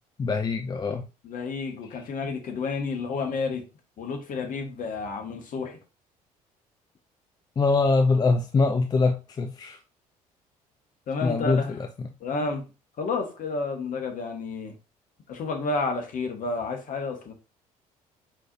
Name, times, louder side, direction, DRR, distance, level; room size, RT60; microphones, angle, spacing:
voice 1, 0.2-1.0 7.6-9.8 11.2-12.1, left 3 dB, 20° left, 0.4 m, -23 dB
voice 2, 1.2-3.6 4.0-5.8 11.1-11.7 12.2-12.7 13.0-14.7 15.3-17.3, left 4 dB, 45° left, 1.3 m, -30 dB
4.6 x 4.3 x 2.6 m
figure-of-eight pair, 50°, 20 cm